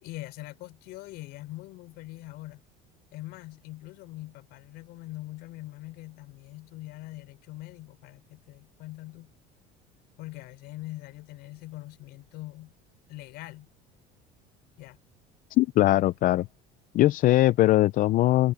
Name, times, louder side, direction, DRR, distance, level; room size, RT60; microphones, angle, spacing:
voice 1, 0.0-2.6 3.1-9.3 10.2-12.7 13.1-13.7 14.8-15.0, left 18 dB, 70° left, 4.0 m, -42 dB
voice 2, 15.6-16.5 16.9-18.5, left 15 dB, 50° left, 0.5 m, -21 dB
cardioid pair, 125°, 18 cm